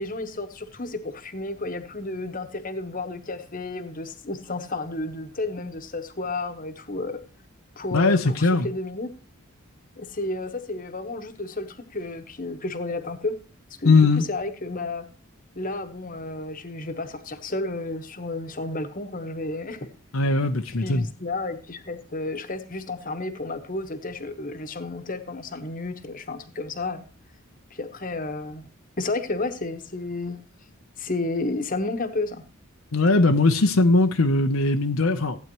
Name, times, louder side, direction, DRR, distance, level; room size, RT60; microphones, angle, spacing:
voice 1, 0.0-7.2 7.8-9.1 10.0-13.4 13.8-15.1 15.5-19.9 20.7-27.0 27.7-28.6 29.0-30.4 31.0-32.4, left 2 dB, 40° left, 1.2 m, -32 dB
voice 2, 7.9-8.7 13.8-14.2 20.1-21.1 32.9-35.4, left 3 dB, 75° left, 0.8 m, -20 dB
15.0 x 9.0 x 3.0 m
head